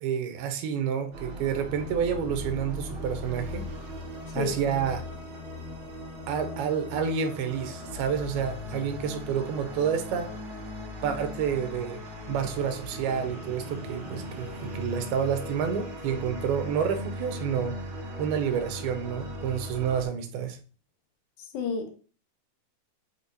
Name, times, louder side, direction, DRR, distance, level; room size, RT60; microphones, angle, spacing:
voice 1, 0.0-3.7 4.3-5.1 6.3-10.3 11.0-12.0 12.3-17.7 18.2-20.6, right 7 dB, 80° right, 6 dB, 2.6 m, -29 dB
sound 1, 1.1-20.0, left 1 dB, 55° right, 1.5 m, -38 dB
voice 2, 21.5-21.9, left 5 dB, 75° left, 4 dB, 1.8 m, -29 dB
8.2 x 4.3 x 2.7 m, 0.38 s
omnidirectional pair, 4.5 m